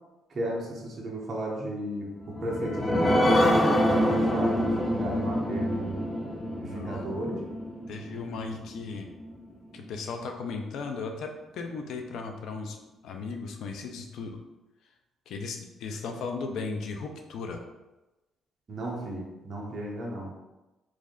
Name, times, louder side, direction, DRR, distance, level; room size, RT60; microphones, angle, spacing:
voice 1, 0.3-6.2 6.6-7.4 18.7-20.3, right 1 dB, 35° right, -3 dB, 0.7 m, -34 dB
sound 1, 2.2-9.3 9.8-9.9 10.2-10.3, equal, 15° left, 0.4 m, -26 dB
voice 2, 6.5-7.2 7.9-9.1 9.7-12.8 13.0-14.4 15.3-17.6, left 4 dB, 75° left, 4 dB, 0.5 m, -36 dB
3.2 x 2.5 x 3.7 m, 1.1 s
cardioid pair, 130°, 0 cm